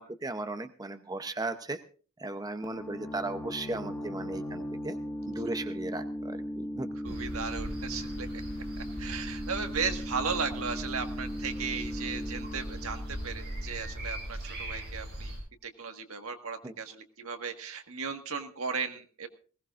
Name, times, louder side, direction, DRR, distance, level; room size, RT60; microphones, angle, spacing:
voice 1, 0.0-1.8 2.2-5.0 5.3-6.9 16.6-16.7, right 2 dB, 20° right, 9 dB, 0.7 m, -36 dB
sound 1, 2.6-14.1, equal, 15° left, 1.6 m, -38 dB
sound 2, 7.0-15.4, equal, 50° right, 6.8 m, -40 dB
voice 2, 7.0-8.4 8.8-15.3 15.6-19.3, right 5 dB, 75° right, 6 dB, 1.6 m, -36 dB
20.0 x 18.0 x 2.5 m, 0.39 s
head